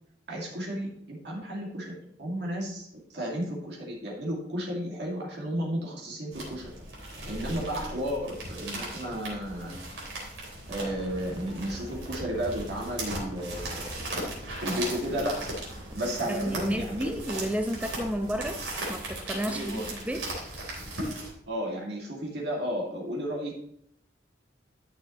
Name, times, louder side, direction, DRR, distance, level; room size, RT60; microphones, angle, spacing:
voice 1, 0.3-2.9 3.1-6.7 7.3-9.7 10.7-13.9 14.6-15.4 15.9-17.1 19.4-19.9 21.5-23.6, equal, 65° right, -2 dB, 2.2 m, -33 dB
sound 1, 6.3-21.3, right 1 dB, 85° right, 3.5 m, -38 dB
sound 2, 10.6-19.2, right 1 dB, 25° right, 1.2 m, -46 dB
voice 2, 16.3-18.6 18.9-20.3, equal, 10° right, 6 dB, 0.7 m, -31 dB
12.5 x 6.7 x 3.0 m, 0.71 s
head